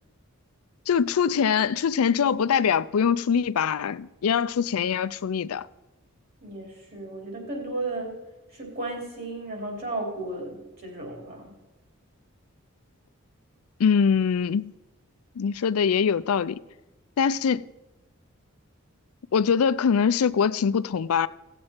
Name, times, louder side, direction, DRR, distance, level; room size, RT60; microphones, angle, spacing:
voice 1, 0.9-5.7 13.8-14.7 15.4-16.6 17.2-17.6 19.3-21.3, left 6 dB, 90° left, 0.4 m, -23 dB
voice 2, 6.4-8.2 8.5-11.5, right 2 dB, 45° right, 3.4 m, -34 dB
17.0 x 7.5 x 4.4 m
head